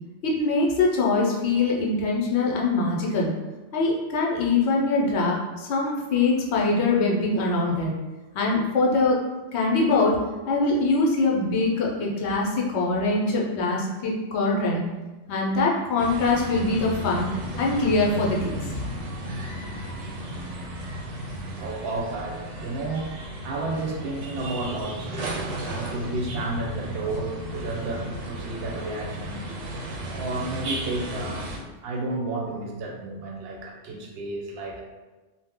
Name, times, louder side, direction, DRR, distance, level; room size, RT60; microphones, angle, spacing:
voice 1, 0.2-3.3 3.7-7.9 8.3-9.2 9.5-10.2 10.5-14.8 15.3-17.3 17.6-18.5, left 3 dB, 70° left, -2 dB, 0.9 m, -23 dB
sound 1, 16.0-31.6, right 1 dB, 90° right, 1.0 m, -34 dB
voice 2, 21.6-23.1 23.4-29.5 30.1-34.8, right 2 dB, 65° right, 0 dB, 0.8 m, -32 dB
2.7 x 2.1 x 3.5 m, 1.2 s
omnidirectional pair, 1.2 m